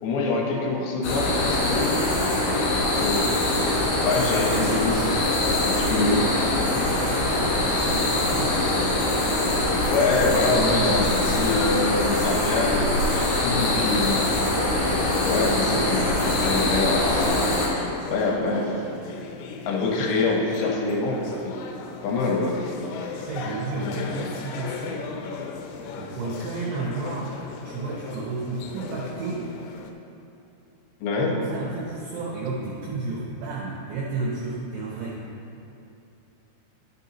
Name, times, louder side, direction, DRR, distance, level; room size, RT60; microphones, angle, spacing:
voice 1, 0.0-2.1 2.8-3.3 4.0-5.1 5.6-6.2 9.9-12.9 13.2-14.2 15.2-16.1 16.4-17.4 18.1-18.8 19.7-21.5 22.0-22.5 31.0-31.3, left 3 dB, 70° left, -1 dB, 2.9 m, -25 dB
sound 1, 1.0-17.7, left 1 dB, 50° left, 2.8 m, -23 dB
voice 2, 5.9-8.6 23.0-25.1 26.0-27.4 27.6-29.5 31.1-35.2, right 3 dB, 80° right, -4 dB, 2.4 m, -32 dB
sound 2, 10.1-29.9, left 5 dB, 85° left, 3.4 m, -37 dB
12.5 x 9.0 x 2.9 m, 2.7 s
omnidirectional pair, 5.8 m